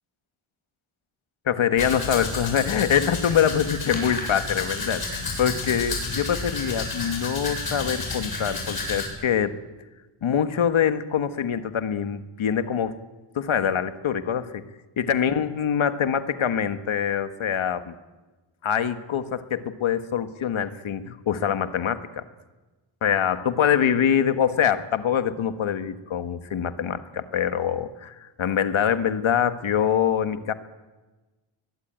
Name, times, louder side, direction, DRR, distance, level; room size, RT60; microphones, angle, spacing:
voice 1, 1.4-9.6 10.2-13.0 13.3-14.6 15.0-17.9 18.6-22.2 23.0-30.5, left 8 dB, 75° left, 10 dB, 1.5 m, -24 dB
Domestic sounds home sounds, 1.8-9.1, left 3 dB, 45° left, 7.3 m, -31 dB
22.0 x 21.0 x 9.2 m, 1.2 s
wide cardioid pair, 165°, 49 cm